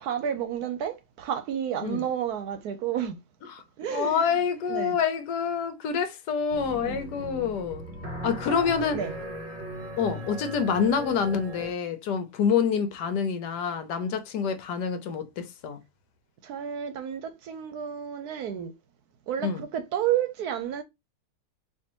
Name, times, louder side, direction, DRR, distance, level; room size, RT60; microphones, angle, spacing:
voice 1, 0.0-3.2 3.8-4.3 4.7-5.0 6.8-7.1 8.2-8.7 8.9-9.1 16.4-18.7 19.3-20.8, right 9 dB, 70° right, 1.0 m, -31 dB
voice 2, 3.9-7.8 8.2-9.0 10.0-15.8 19.4-19.6, left 6 dB, 75° left, 1.3 m, -27 dB
sound 1, 6.5-11.7, equal, 35° right, 0.8 m, -38 dB
4.4 x 2.7 x 2.9 m
omnidirectional pair, 1.9 m